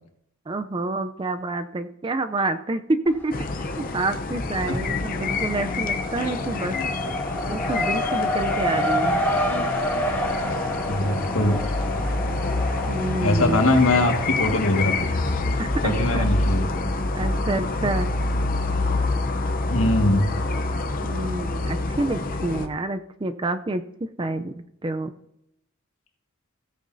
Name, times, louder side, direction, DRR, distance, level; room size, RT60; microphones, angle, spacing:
voice 1, 0.5-3.4 3.8-6.8 7.5-9.2 12.9-13.6 15.6-16.3 17.2-18.1 21.0-23.8 24.2-25.1, right 2 dB, 25° right, 9 dB, 0.4 m, -28 dB
Race car auto racing, 3.1-3.8 4.1-15.5, equal, 10° left, 1.4 m, -29 dB
sound 1, 3.3-22.7, left 2 dB, 40° left, 0.6 m, -27 dB
voice 2, 10.8-11.7 13.2-15.1 15.8-16.8 19.7-20.3, left 1 dB, 80° left, 3 dB, 1.7 m, -22 dB
16.0 x 9.2 x 2.6 m, 0.78 s
head